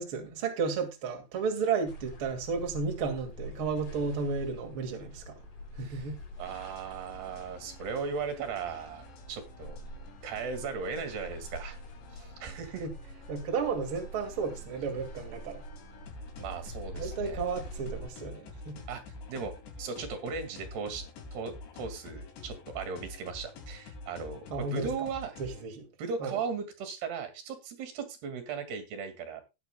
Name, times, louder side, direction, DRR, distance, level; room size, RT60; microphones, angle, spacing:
voice 1, 0.0-5.4 5.8-6.2 12.8-12.9 13.3-15.6 17.0-18.8 24.5-24.9 25.4-25.9 26.2-26.4, right 5 dB, 35° right, 2.6 m, -33 dB
sound 1, 1.9-18.1, equal, 55° left, 5.8 m, -45 dB
voice 2, 6.4-9.8 10.2-11.8 12.1-12.9 16.4-17.4 18.9-19.0 19.3-19.5 19.8-21.0 21.3-25.4 26.0-29.4, right 5 dB, 70° right, 4.3 m, -37 dB
sound 2, 6.5-25.7, left 3 dB, 85° left, 5.0 m, -48 dB
16.0 x 9.8 x 2.3 m
omnidirectional pair, 4.9 m